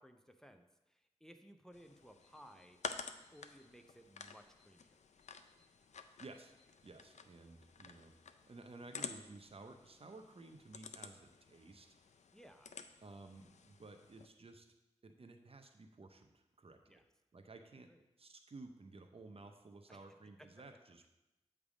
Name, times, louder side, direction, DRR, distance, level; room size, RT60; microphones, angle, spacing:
voice 1, 0.0-2.9 3.3-5.0 12.3-12.7 16.9-17.0 17.9-18.0 19.9-20.0, equal, 5° left, 6 dB, 0.6 m, -60 dB
sound 1, 1.7-14.3, left 5 dB, 80° left, 0.4 m, -51 dB
Alarm, 2.2-7.0, left 4 dB, 55° left, 1.6 m, -76 dB
voice 2, 6.2-6.5 6.8-8.1 8.4-11.9 13.0-14.7 15.0-17.0 17.3-17.9 18.2-21.1, right 3 dB, 55° right, 6 dB, 0.7 m, -55 dB
8.3 x 3.4 x 5.0 m, 0.94 s
cardioid pair, 45°, 12 cm